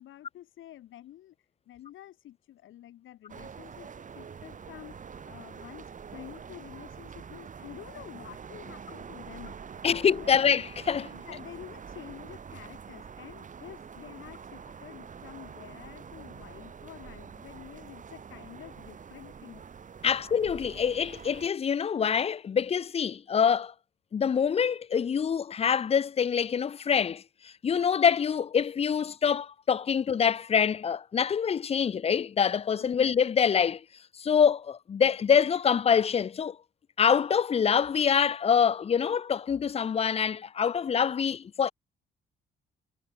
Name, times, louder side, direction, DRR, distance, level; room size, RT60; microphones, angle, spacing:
voice 1, 0.0-1.3 1.7-3.9 4.2-5.0 5.2-5.8 6.1-9.6 10.2-10.4 11.1-19.6 32.8-33.0, left 13 dB, 80° left, 5.3 m, -48 dB
sound 1, 3.3-21.5, right 6 dB, 40° right, 1.6 m, -45 dB
voice 2, 9.8-11.1 20.0-23.7 24.1-33.8 34.2-36.6 37.0-41.7, left 7 dB, 30° left, 0.5 m, -25 dB
cardioid pair, 90°, 20 cm